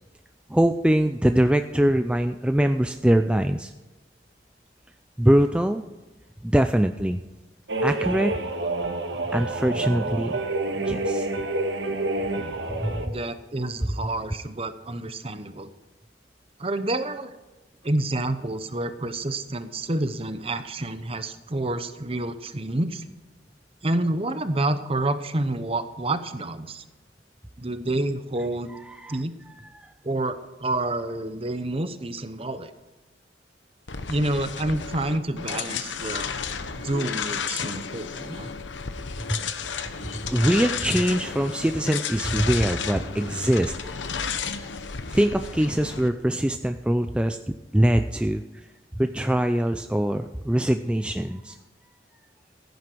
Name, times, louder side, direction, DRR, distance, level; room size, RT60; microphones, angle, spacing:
voice 1, 0.5-3.7 5.2-5.8 6.4-7.2 7.8-8.4 9.3-10.4 10.8-11.3 12.8-12.9 29.0-29.2 29.6-29.9 39.3-39.4 39.8-39.9 40.2-44.0 44.4-44.5 45.1-47.4 47.7-48.4 49.0-51.6, right 1 dB, 5° right, 7 dB, 0.4 m, -23 dB
sound 1, 7.7-13.1, right 2 dB, 75° right, 1.6 m, -28 dB
voice 2, 13.0-15.7 16.6-17.3 17.8-23.0 23.8-26.8 27.6-28.7 29.1-29.3 30.0-32.7 34.1-36.3 36.7-38.5, right 2 dB, 30° right, 11 dB, 0.9 m, -28 dB
sound 2, 33.9-46.1, left 6 dB, 90° left, 1.0 m, -32 dB
16.0 x 9.5 x 4.6 m, 1.2 s
head